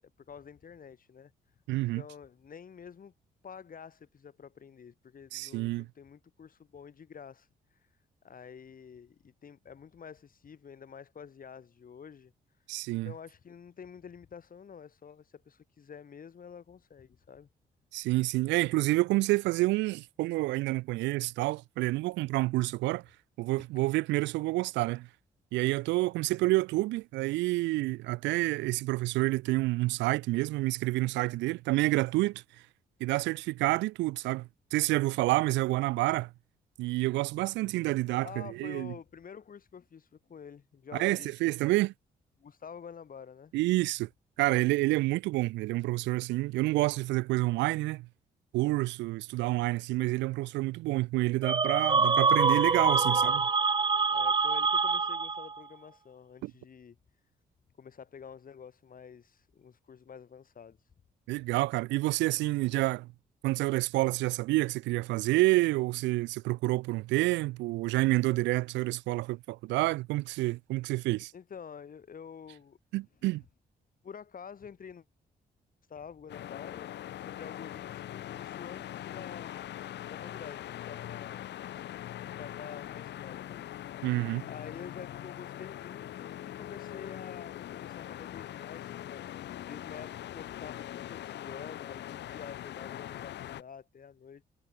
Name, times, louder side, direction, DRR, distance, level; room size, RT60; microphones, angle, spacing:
voice 1, 0.0-1.6 1.9-3.1 3.4-7.9 8.2-17.5 35.1-35.2 38.2-41.5 42.4-43.5 52.9-53.4 54.1-57.0 57.8-60.9 71.3-72.8 74.0-75.0 75.9-79.7 80.1-81.5 82.2-83.7 84.4-89.2 89.7-94.4, left 7 dB, 50° left, 2.6 m, -48 dB
voice 2, 1.7-2.0 5.3-5.9 12.7-13.1 17.9-23.0 23.4-25.1 25.5-32.4 33.0-36.3 36.8-38.9 40.9-41.9 43.5-44.1 44.4-48.1 48.5-53.4 56.4-56.5 61.3-63.1 63.4-71.3 72.9-73.4 84.0-84.4, right 20 dB, 90° right, 0.5 m, -28 dB
sound 1, 51.4-55.6, right 4 dB, 25° right, 0.6 m, -25 dB
Saws buzzing in busy neighborhood wood shop, 76.3-93.6, left 12 dB, 75° left, 1.2 m, -42 dB
supercardioid pair, 60°, 18 cm